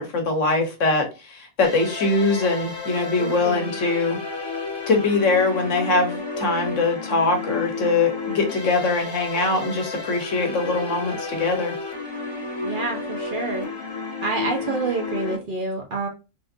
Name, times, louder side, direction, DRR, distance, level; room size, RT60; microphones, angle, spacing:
voice 1, 0.0-4.2 4.9-11.8, left 3 dB, 75° left, 1.2 m, -22 dB
sound 1, 1.6-15.4, left 3 dB, 20° left, 1.4 m, -31 dB
voice 2, 3.2-3.7 12.6-13.7 14.2-16.1, right 3 dB, 45° right, 0.9 m, -28 dB
3.6 x 2.5 x 2.6 m
omnidirectional pair, 1.3 m